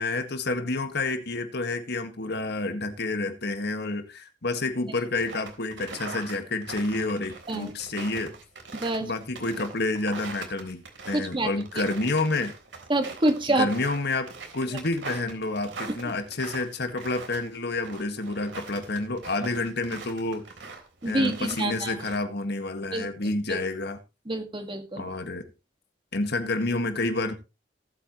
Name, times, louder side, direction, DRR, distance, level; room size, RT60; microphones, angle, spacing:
voice 1, 0.0-8.3 9.0-12.5 13.5-20.5 21.1-24.0 25.0-25.5 26.1-27.3, left 2 dB, 60° left, 1.7 m, -29 dB
sound 1, 5.1-22.2, right 4 dB, 65° right, 3.5 m, -42 dB
voice 2, 8.7-9.1 11.1-11.9 12.9-13.7 21.0-22.0 22.9-23.6 24.3-25.1, right 1 dB, 25° right, 1.8 m, -27 dB
18.0 x 8.7 x 3.0 m
head